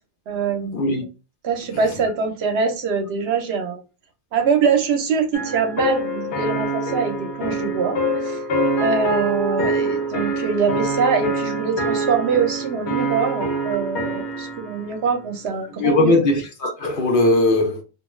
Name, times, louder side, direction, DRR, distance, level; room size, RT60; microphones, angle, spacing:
voice 1, 0.3-1.1 1.4-3.8 4.3-8.4 8.8-16.1, right 5 dB, 75° right, 0.9 m, -23 dB
sound 1, 5.3-14.8, right 1 dB, 90° left, 1.0 m, -25 dB
voice 2, 15.8-17.8, left 2 dB, 60° left, 0.7 m, -19 dB
2.4 x 2.3 x 3.0 m
omnidirectional pair, 1.1 m